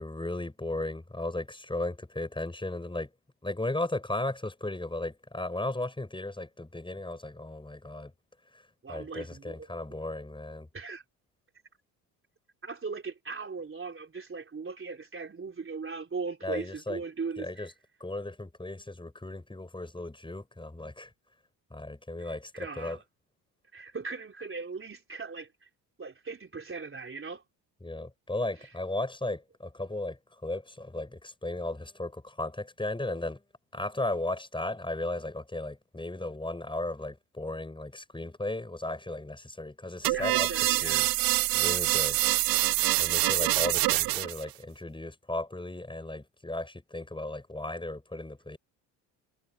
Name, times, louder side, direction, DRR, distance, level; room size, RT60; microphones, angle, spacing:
voice 1, 0.0-3.1 3.4-8.1 8.5-10.7 16.4-17.0 17.4-17.7 18.0-21.1 21.7-23.0 27.8-33.4 33.7-40.5 40.8-41.1 41.5-42.2 43.0-48.6, left 2 dB, 10° left, 7.2 m, -35 dB
voice 2, 8.8-9.6 10.7-11.0 12.6-17.7 22.2-23.0 23.7-25.7 26.0-27.4 28.6-28.7 40.1-41.1 43.4-43.8 44.1-44.2, right 4 dB, 25° right, 4.1 m, -39 dB
sound 1, 40.0-44.4, right 20 dB, 45° right, 0.5 m, -25 dB
hypercardioid pair, 70°, 49 cm